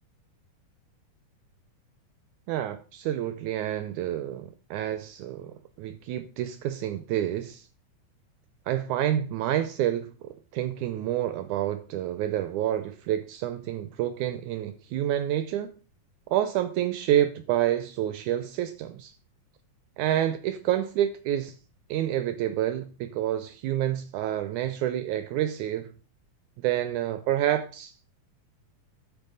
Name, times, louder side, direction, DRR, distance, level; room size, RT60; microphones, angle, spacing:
voice 1, 2.5-7.7 8.7-15.7 16.3-19.1 20.0-21.6 21.9-25.9 26.6-28.1, right 12 dB, 80° right, 1.9 m, -28 dB
12.0 x 9.2 x 3.9 m
omnidirectional pair, 3.8 m